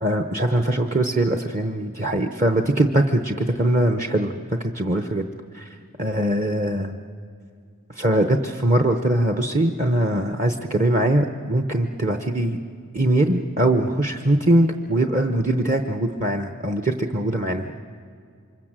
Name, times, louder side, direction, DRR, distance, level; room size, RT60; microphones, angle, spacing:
voice 1, 0.0-5.2 5.5-7.0 7.9-12.6 12.9-17.8, right 1 dB, 35° right, 5 dB, 0.8 m, -22 dB
28.0 x 24.5 x 7.5 m, 2.3 s
head